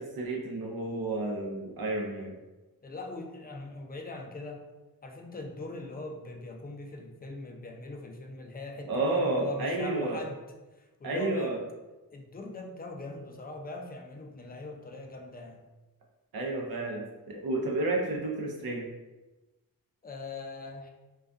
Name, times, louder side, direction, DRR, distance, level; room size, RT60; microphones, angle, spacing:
voice 1, 0.0-2.4 8.9-10.2 11.0-11.6 16.3-18.9, right 2 dB, 80° right, 0 dB, 0.6 m, -31 dB
voice 2, 2.8-4.6 5.0-10.4 10.8-11.6 12.1-15.7 20.0-20.9, left 2 dB, 25° left, 3 dB, 0.4 m, -41 dB
2.3 x 2.3 x 2.5 m, 1.1 s
cardioid pair, 50°, 36 cm